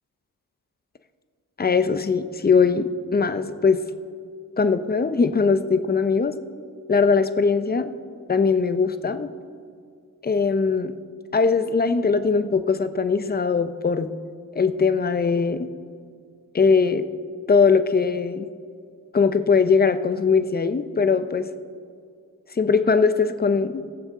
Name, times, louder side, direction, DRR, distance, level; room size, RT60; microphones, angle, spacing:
voice 1, 1.6-3.8 4.6-6.4 6.9-7.9 8.3-9.3 10.2-10.9 11.3-14.1 14.5-15.7 16.5-17.0 17.5-18.5 19.1-21.5 22.6-23.8, left 5 dB, 25° left, 11 dB, 0.7 m, -20 dB
21.0 x 7.2 x 3.7 m, 2.2 s
cardioid pair, 70°, 35 cm